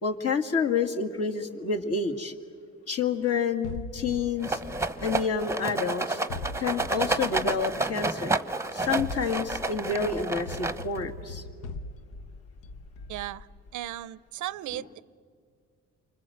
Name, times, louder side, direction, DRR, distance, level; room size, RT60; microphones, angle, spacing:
voice 1, 0.0-2.3 2.9-4.6 5.0-6.2 6.5-8.3 8.7-11.4 14.7-14.8, left 5 dB, 55° left, 3 dB, 2.3 m, -29 dB
sound 1, 3.6-5.8 6.3-8.1 8.8-13.9, left 3 dB, 80° left, 1.0 m, -41 dB
Rattle, 4.4-11.1, right 2 dB, 10° right, 0.9 m, -30 dB
voice 2, 13.1-13.5 13.7-15.0, right 14 dB, 75° right, 19 dB, 0.6 m, -36 dB
28.5 x 24.5 x 7.9 m, 2.1 s
cardioid pair, 90°, 30 cm